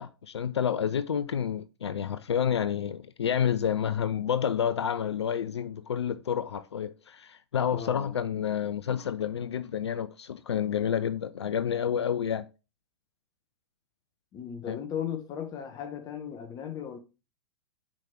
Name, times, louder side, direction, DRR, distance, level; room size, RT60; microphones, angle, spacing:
voice 1, 0.0-12.5 14.7-14.8, left 8 dB, 70° left, 0.5 m, -29 dB
voice 2, 7.7-8.2 14.3-17.0, left 8 dB, 25° left, 1.2 m, -36 dB
7.5 x 4.9 x 4.5 m
figure-of-eight pair, 100°, 14 cm